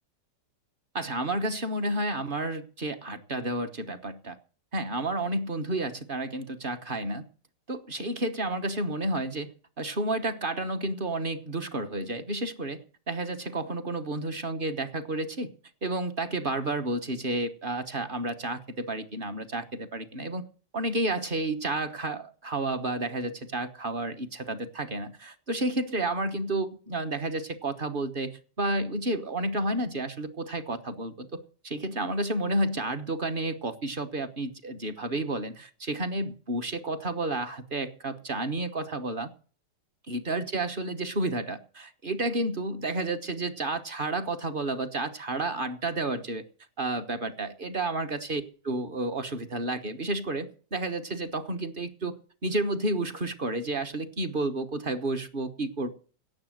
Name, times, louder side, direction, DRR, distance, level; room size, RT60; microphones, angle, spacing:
voice 1, 0.9-4.4 4.7-7.3 7.7-9.5 9.8-12.8 13.1-15.5 15.8-20.4 20.7-39.3 40.1-46.4 46.8-52.1 52.4-55.9, right 2 dB, 35° right, 9 dB, 1.1 m, -31 dB
17.0 x 7.3 x 7.6 m, 0.41 s
omnidirectional pair, 1.9 m